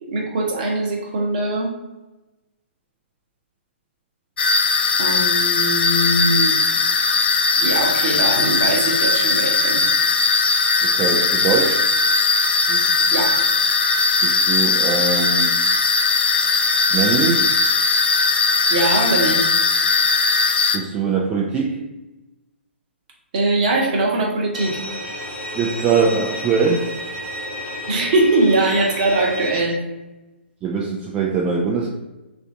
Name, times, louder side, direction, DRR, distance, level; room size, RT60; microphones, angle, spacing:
voice 1, 0.0-1.7 5.0-6.6 7.6-9.8 12.7-12.8 13.1-13.3 18.7-19.5 23.3-24.8 27.9-29.8, right 2 dB, 40° right, -1 dB, 0.9 m, -21 dB
sound 1, 4.4-20.8, left 4 dB, 55° left, 0.4 m, -18 dB
voice 2, 10.8-11.8 14.2-15.6 16.9-17.6 20.7-21.8 25.5-26.9 30.6-31.9, right 5 dB, 15° right, -2 dB, 0.3 m, -22 dB
Bowed string instrument, 24.5-29.6, left 1 dB, 10° left, 0.9 m, -31 dB
3.2 x 2.5 x 3.7 m, 1.1 s
figure-of-eight pair, 130°, 7 cm